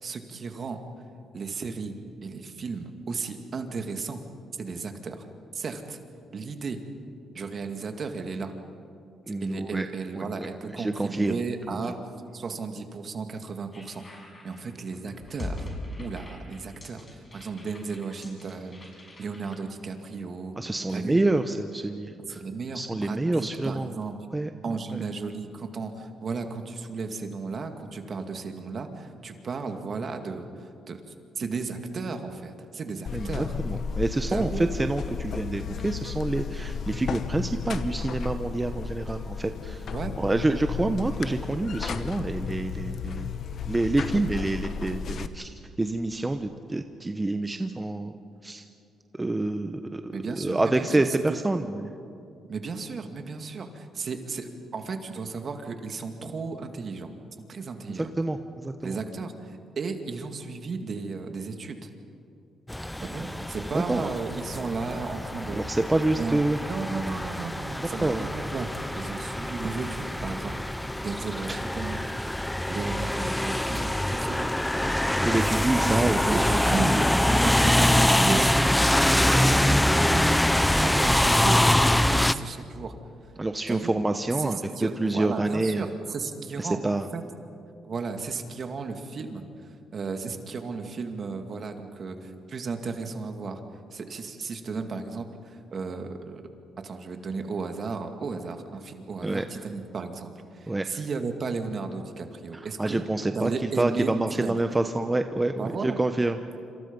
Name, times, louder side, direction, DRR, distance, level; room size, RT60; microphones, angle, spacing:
voice 1, 0.0-0.8 1.3-1.9 2.2-4.2 4.6-5.3 5.5-6.0 6.3-6.8 7.3-8.5 9.3-12.0 12.3-15.7 16.0-20.6 20.9-21.2 22.3-24.2 24.6-31.0 31.4-33.6 34.3-34.7 39.9-40.1 50.1-51.4 52.5-57.1 57.5-58.1 58.8-61.9 63.0-65.7 66.1-72.0 72.3-72.4 72.7-74.5 75.8-82.9 83.7-83.9 84.4-87.2 87.8-89.4 89.9-93.6 93.9-96.4 96.8-103.0 103.3-104.2 104.4-104.6 105.6-106.0, right 4 dB, 50° right, 6 dB, 2.2 m, -34 dB
voice 2, 9.3-9.9 10.1-10.5 10.7-11.3 11.7-11.8 20.6-22.4 22.7-23.9 24.3-24.5 24.9-25.0 33.1-39.9 40.2-43.3 43.7-45.5 45.8-48.1 48.4-48.6 49.1-51.9 57.9-59.0 63.2-63.3 63.7-64.1 65.5-66.6 68.0-68.3 75.2-76.6 77.4-77.7 78.2-78.3 78.6-78.7 83.4-85.9 86.6-87.1 99.2-99.4 100.7-100.8 102.5-106.4, right 2 dB, 15° right, 7 dB, 1.0 m, -27 dB
sound 1, 13.7-19.5, left 1 dB, 30° left, 6.9 m, -41 dB
Buzz, 33.1-45.3, left 6 dB, 60° left, 1.1 m, -34 dB
sound 2, 62.7-82.3, left 1 dB, 5° left, 0.7 m, -24 dB
27.0 x 26.5 x 5.4 m, 2.6 s
cardioid pair, 90°, 0 cm